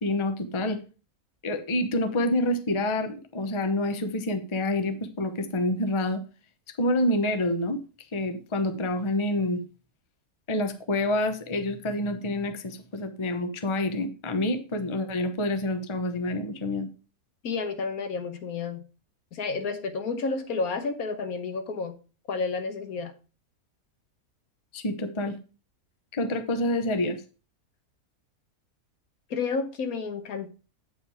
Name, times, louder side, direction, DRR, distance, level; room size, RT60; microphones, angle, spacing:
voice 1, 0.0-0.8 1.4-6.2 6.8-7.8 8.1-9.6 10.5-16.9 24.7-25.4 26.1-27.2, left 1 dB, 25° left, 8 dB, 0.8 m, -27 dB
voice 2, 17.4-18.8 19.3-21.9 22.3-23.1 29.3-30.5, left 4 dB, 75° left, 7 dB, 1.6 m, -30 dB
8.6 x 5.6 x 4.7 m, 0.35 s
omnidirectional pair, 1.6 m